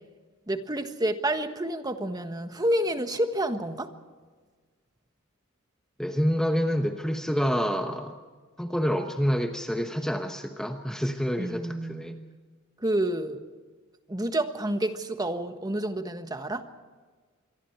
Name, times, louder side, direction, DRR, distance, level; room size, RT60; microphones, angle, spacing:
voice 1, 0.5-3.9 11.4-12.1 12.8-13.4 14.1-16.6, right 1 dB, 20° right, 7 dB, 1.4 m, -29 dB
voice 2, 6.0-8.2 8.6-12.2, equal, 5° left, 5 dB, 1.1 m, -27 dB
26.5 x 23.5 x 4.6 m, 1.4 s
head